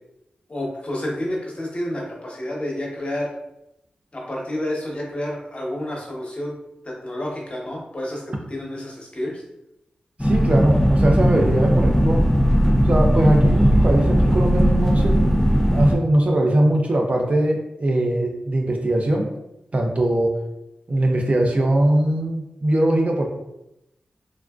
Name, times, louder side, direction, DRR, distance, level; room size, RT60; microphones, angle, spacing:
voice 1, 0.5-3.3 4.1-6.6 6.8-9.4, left 1 dB, 40° left, -2 dB, 1.0 m, -29 dB
sound 1, 10.2-15.9, equal, 10° left, 0.4 m, -18 dB
voice 2, 10.2-12.3 12.8-15.4 15.7-19.3 19.7-20.3 20.9-23.3, right 1 dB, 45° right, 1 dB, 0.6 m, -20 dB
3.4 x 2.4 x 2.3 m, 0.86 s
cardioid pair, 45°, 3 cm